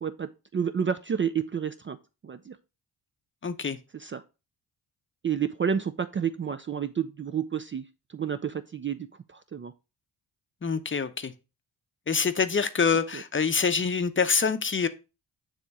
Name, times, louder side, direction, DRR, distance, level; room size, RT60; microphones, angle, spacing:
voice 1, 0.0-2.0 2.2-2.6 3.9-4.2 5.2-7.9 8.1-9.7 13.1-13.2, right 7 dB, 30° right, 0.4 m, -30 dB
voice 2, 3.4-3.8 10.6-11.3 12.1-14.9, left 5 dB, 30° left, 0.6 m, -25 dB
7.0 x 3.0 x 4.7 m
cardioid pair, 60°, 43 cm